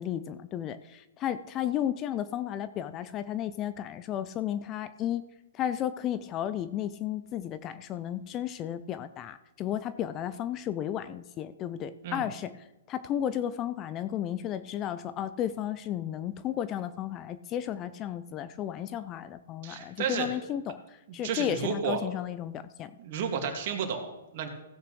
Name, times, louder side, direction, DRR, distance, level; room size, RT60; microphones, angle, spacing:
voice 1, 0.0-5.2 5.5-12.5 12.9-22.9, left 10 dB, 30° left, 13 dB, 0.5 m, -33 dB
voice 2, 19.6-20.3 21.2-22.0 23.0-24.5, right 6 dB, 50° right, 4 dB, 2.2 m, -32 dB
16.0 x 8.3 x 3.2 m, 0.99 s
hypercardioid pair, 130°, 0 cm